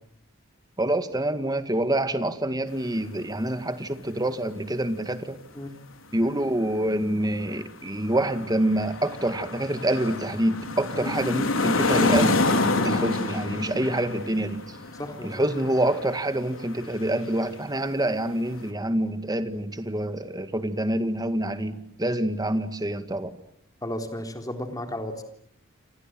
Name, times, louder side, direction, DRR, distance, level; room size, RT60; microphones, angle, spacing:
voice 1, 0.8-5.4 6.1-12.4 12.8-14.8 15.2-23.4, right 1 dB, 20° right, 9 dB, 1.9 m, -26 dB
sound 1, 7.0-7.5 8.0-17.0, left 2 dB, 75° left, 3.7 m, -27 dB
voice 2, 15.0-15.4 23.8-25.2, left 1 dB, 20° left, 5 dB, 3.8 m, -33 dB
28.5 x 27.5 x 7.7 m, 0.71 s
head